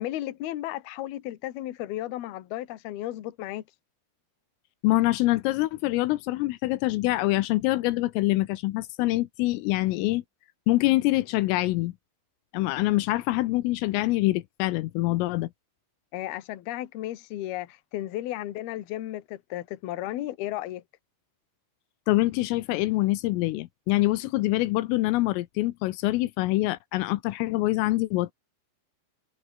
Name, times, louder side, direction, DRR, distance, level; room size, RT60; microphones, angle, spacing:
voice 1, 0.0-3.6 16.1-20.8, left 14 dB, 60° left, 3.0 m, -34 dB
voice 2, 4.8-10.2 10.7-11.9 12.5-15.5 22.1-28.3, left 18 dB, 80° left, 3.5 m, -25 dB
omnidirectional pair, 5.9 m